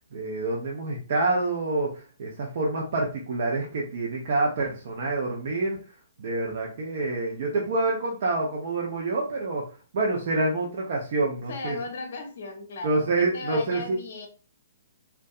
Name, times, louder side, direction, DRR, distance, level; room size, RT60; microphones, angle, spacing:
voice 1, 0.1-5.8 6.2-11.8 12.8-14.0, right 2 dB, 50° right, -2 dB, 0.5 m, -27 dB
voice 2, 11.5-14.3, left 3 dB, 50° left, 4 dB, 0.7 m, -36 dB
2.5 x 2.2 x 2.3 m, 0.37 s
figure-of-eight pair, 125°, 0 cm